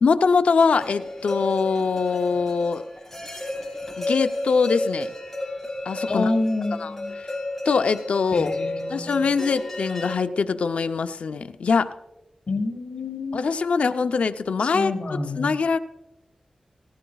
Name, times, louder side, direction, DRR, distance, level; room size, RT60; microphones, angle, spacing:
voice 1, 0.0-2.8 4.0-5.1 5.9-6.3 6.8-6.9 7.2-7.3 7.7-8.5 8.9-11.9 13.3-15.8, left 5 dB, 90° left, 9 dB, 0.5 m, -23 dB
sound 1, 0.7-10.1, left 2 dB, 10° left, 4.6 m, -32 dB
voice 2, 6.1-7.2 8.3-9.4 12.5-13.5 14.6-15.5, left 2 dB, 60° left, 2 dB, 1.9 m, -28 dB
18.5 x 15.0 x 2.3 m, 0.97 s
wide cardioid pair, 110°, 2 cm